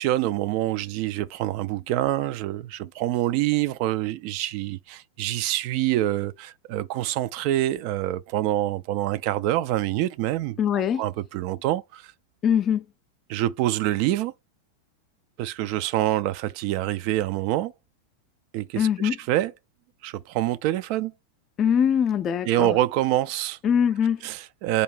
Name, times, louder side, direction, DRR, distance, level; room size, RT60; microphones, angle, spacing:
voice 1, 0.0-10.6 11.0-12.1 13.3-14.3 15.4-17.7 18.5-19.5 20.0-21.1 22.5-23.6 24.2-24.8, right 14 dB, 45° right, 0.3 m, -26 dB
voice 2, 10.6-11.0 12.4-12.8 18.8-19.2 21.6-22.7 23.6-24.2, left 8 dB, 30° left, 0.5 m, -22 dB
4.0 x 2.7 x 4.6 m
figure-of-eight pair, 90°, 0 cm